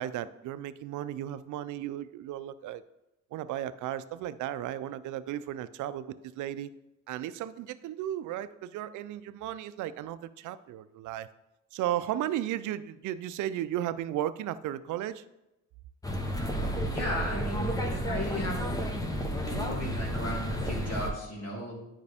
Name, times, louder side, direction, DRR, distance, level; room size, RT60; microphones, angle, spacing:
voice 1, 0.0-2.8 3.3-6.7 7.1-11.3 11.7-15.2, right 12 dB, 80° right, 15 dB, 0.5 m, -35 dB
sound 1, 16.0-21.1, equal, 10° left, 1.0 m, -31 dB
voice 2, 16.9-18.6 19.0-21.7, left 1 dB, 55° left, -3 dB, 2.8 m, -36 dB
9.4 x 5.3 x 3.5 m, 0.93 s
cardioid pair, 90°, 30 cm